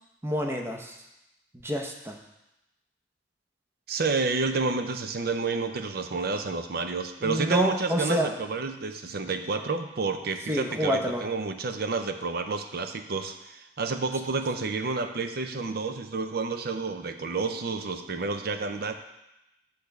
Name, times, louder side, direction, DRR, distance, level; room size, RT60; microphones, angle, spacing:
voice 1, 0.2-0.9 1.6-2.2 7.2-8.3 10.5-11.2, equal, 15° right, 2 dB, 0.7 m, -28 dB
voice 2, 3.9-18.9, right 4 dB, 55° right, 7 dB, 0.5 m, -30 dB
8.2 x 3.4 x 6.5 m, 0.92 s
head